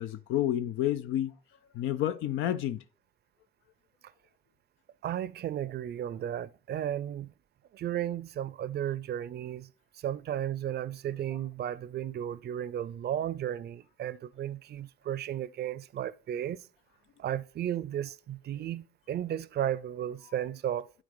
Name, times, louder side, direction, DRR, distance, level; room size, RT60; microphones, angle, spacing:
voice 1, 0.0-1.3 1.7-2.8 20.2-20.3, left 12 dB, 85° left, 0.5 m, -30 dB
voice 2, 5.0-7.3 7.7-9.7 9.9-16.7 17.2-20.9, right 11 dB, 55° right, 0.5 m, -34 dB
11.0 x 3.8 x 3.8 m
cardioid pair, 90°, 20 cm